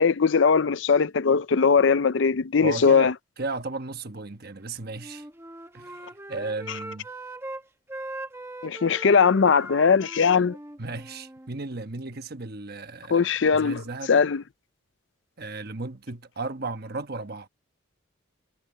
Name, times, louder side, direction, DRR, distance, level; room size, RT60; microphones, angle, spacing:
voice 1, 0.0-3.1 8.6-10.6 13.1-13.8 14.1-14.4, left 5 dB, 60° left, 0.5 m, -20 dB
voice 2, 2.6-5.3 5.7-7.1 10.8-14.3 15.4-17.5, right 3 dB, 50° right, 1.2 m, -35 dB
Wind instrument woodwind instrument, 4.9-7.6 7.9-11.5, right 2 dB, 10° right, 1.0 m, -41 dB
head